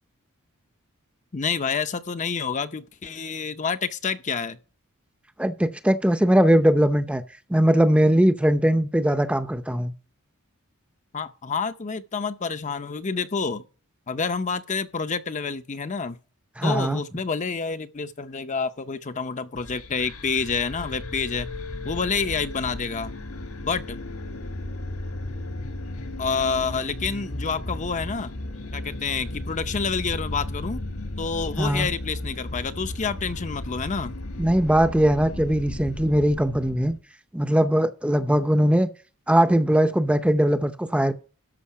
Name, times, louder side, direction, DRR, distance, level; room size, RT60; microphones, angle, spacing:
voice 1, 1.3-4.6 11.1-13.6 14.1-16.2 16.6-21.5 21.8-23.1 23.6-24.0 26.2-28.3 28.7-30.8 31.2-34.2, left 5 dB, 35° left, 0.6 m, -28 dB
voice 2, 5.4-7.2 7.5-9.9 16.6-17.0 31.6-31.9 34.4-37.0 37.3-38.9 39.3-41.1, right 1 dB, 5° right, 0.6 m, -20 dB
sound 1, 19.5-37.0, left 1 dB, 70° left, 1.6 m, -35 dB
13.0 x 5.6 x 5.6 m
head